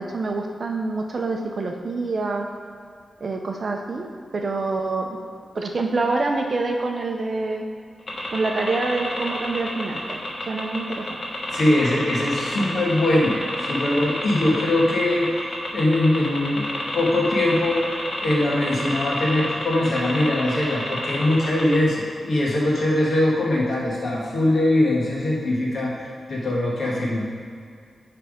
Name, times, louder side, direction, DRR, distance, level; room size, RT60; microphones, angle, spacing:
voice 1, 0.0-2.5 3.2-5.1 5.5-7.7 8.3-10.2 10.5-11.2, right 3 dB, 45° right, 2 dB, 0.6 m, -26 dB
sound 1, 8.1-21.9, left 1 dB, 30° left, 1.3 m, -29 dB
voice 2, 11.5-15.3 15.7-16.7 16.9-17.8 18.2-27.3, left 1 dB, 55° left, -4 dB, 1.5 m, -22 dB
10.0 x 3.4 x 5.0 m, 2.3 s
wide cardioid pair, 170°, 0 cm